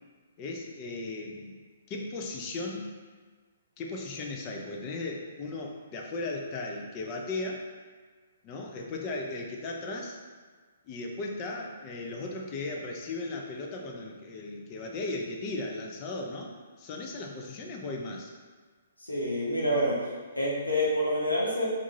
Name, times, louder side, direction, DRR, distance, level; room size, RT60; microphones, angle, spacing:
voice 1, 0.4-1.6 1.9-3.0 3.8-7.6 8.4-10.2 10.9-16.5 16.8-18.3, left 2 dB, 30° left, 0 dB, 0.6 m, -36 dB
voice 2, 19.0-20.0 20.4-21.7, equal, 85° left, -6 dB, 0.9 m, -27 dB
3.6 x 2.6 x 4.1 m, 1.5 s
figure-of-eight pair, 125°, 0 cm